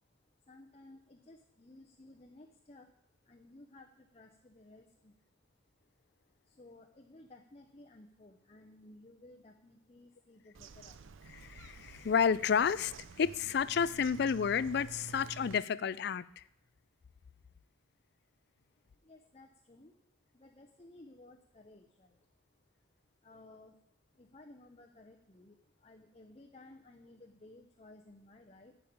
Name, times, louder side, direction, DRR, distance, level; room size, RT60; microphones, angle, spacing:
voice 1, 0.2-5.4 5.8-5.9 6.4-11.4 18.7-22.6 23.2-28.8, left 2 dB, 30° left, 0.7 m, -57 dB
Bird vocalization bird call bird song, 10.5-15.6, right 5 dB, 75° right, 0.5 m, -50 dB
voice 2, 11.4-12.9 13.2-16.4, left 6 dB, 55° left, 0.4 m, -30 dB
11.5 x 5.5 x 8.7 m
head